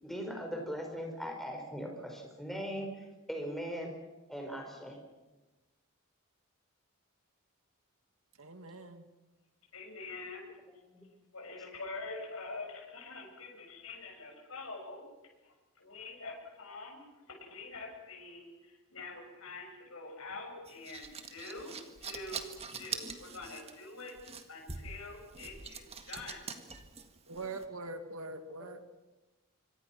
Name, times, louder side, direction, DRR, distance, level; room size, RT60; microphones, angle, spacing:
voice 1, 0.0-3.9 4.3-5.0 10.9-11.1, equal, ahead, 1 dB, 5.4 m, -39 dB
voice 2, 8.4-9.1 27.3-28.8, right 2 dB, 75° right, 7 dB, 2.3 m, -43 dB
voice 3, 9.7-10.4 11.3-15.0 15.4-17.0 17.4-21.7 22.0-22.5 22.7-24.1 24.5-26.5, left 3 dB, 70° left, 0 dB, 7.3 m, -45 dB
sound 1, 20.7-27.7, right 5 dB, 30° right, 1.8 m, -44 dB
26.0 x 25.0 x 6.1 m, 1.1 s
head